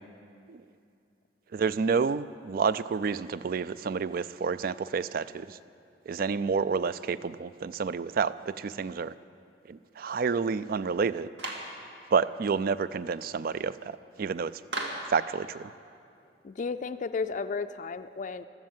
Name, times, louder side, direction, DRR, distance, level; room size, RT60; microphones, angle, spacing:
voice 1, 1.5-5.6 6.1-9.1 9.7-11.3 12.1-14.5 15.1-15.7, right 5 dB, 55° right, 16 dB, 0.4 m, -29 dB
Clapping, 11.4-11.8 14.7-15.1, right 2 dB, 85° right, 2.0 m, -34 dB
voice 2, 16.4-18.4, left 4 dB, 45° left, 10 dB, 0.4 m, -33 dB
15.0 x 13.0 x 7.3 m, 2.5 s
head